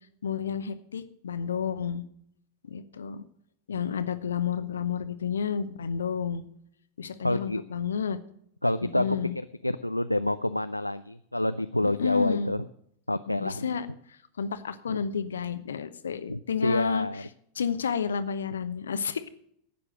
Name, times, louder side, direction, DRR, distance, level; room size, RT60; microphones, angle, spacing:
voice 1, 0.2-2.0 2.6-3.2 3.7-6.4 7.0-8.2 8.8-9.4 11.8-12.6 13.3-17.3 17.5-19.3, left 7 dB, 70° left, 12 dB, 0.8 m, -31 dB
voice 2, 7.2-7.6 8.6-9.0 9.6-12.6 13.1-13.8 14.9-15.0 16.3-17.2, left 1 dB, 85° left, 11 dB, 0.4 m, -28 dB
12.0 x 8.5 x 6.3 m, 0.68 s
figure-of-eight pair, 90°, 0 cm